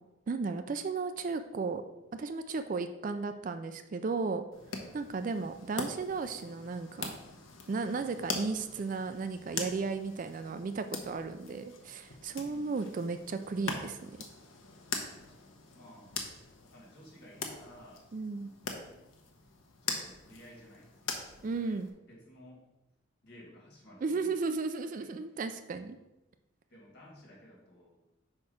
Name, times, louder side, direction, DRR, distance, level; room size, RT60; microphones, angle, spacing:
voice 1, 0.3-1.8 2.1-4.4 4.9-7.2 7.7-14.1 18.1-18.5 21.4-21.9 24.0-26.0, right 4 dB, 40° right, 9 dB, 0.3 m, -34 dB
sound 1, 4.5-21.9, left 4 dB, 90° left, 0.9 m, -42 dB
voice 2, 4.8-5.1 12.4-13.0 15.2-16.2 16.6-18.1 18.3-19.1 19.8-22.7 23.2-24.3 25.0-25.4 26.7-28.1, equal, 55° left, -4 dB, 2.3 m, -56 dB
4.8 x 4.4 x 5.7 m, 0.97 s
head